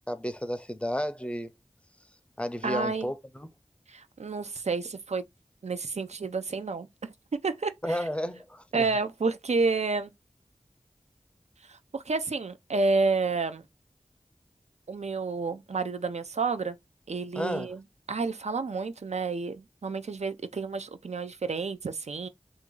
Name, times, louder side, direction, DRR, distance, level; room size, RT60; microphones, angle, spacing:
voice 1, 0.1-1.5 2.4-3.5 7.8-8.9 17.3-17.7, equal, 10° left, 0.5 m, -32 dB
voice 2, 2.6-3.1 3.9-5.2 5.6-7.1 7.4-8.0 8.7-10.1 11.7-13.6 14.9-16.8 17.1-17.8 18.1-22.3, right 4 dB, 70° right, 0.4 m, -30 dB
2.9 x 2.6 x 3.7 m
wide cardioid pair, 40°, 12 cm